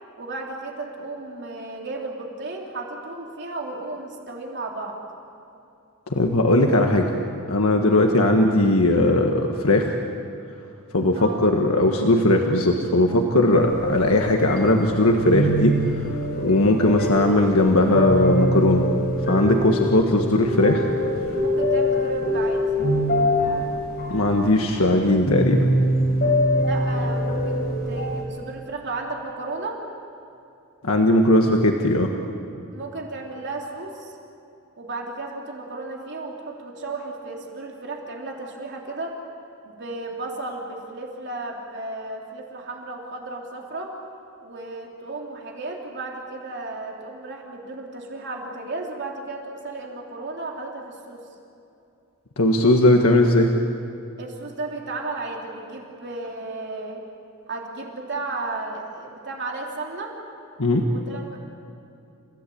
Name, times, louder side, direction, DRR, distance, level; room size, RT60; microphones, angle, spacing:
voice 1, 0.2-5.0 7.9-8.0 11.1-11.4 21.3-22.6 26.5-29.8 32.7-34.1 34.8-39.2 39.6-43.9 44.4-51.2 54.2-57.0 57.5-60.1 60.9-61.4, right 3 dB, 55° right, -1 dB, 3.4 m, -34 dB
voice 2, 6.1-7.1 7.5-9.9 10.9-15.8 16.4-18.8 19.3-20.9 24.1-25.7 30.8-32.1 52.4-53.5 60.6-60.8, left 1 dB, 75° left, 2 dB, 1.6 m, -18 dB
sound 1, 13.5-28.2, left 1 dB, 45° left, 5.3 m, -24 dB
30.0 x 17.0 x 8.6 m, 2.6 s
head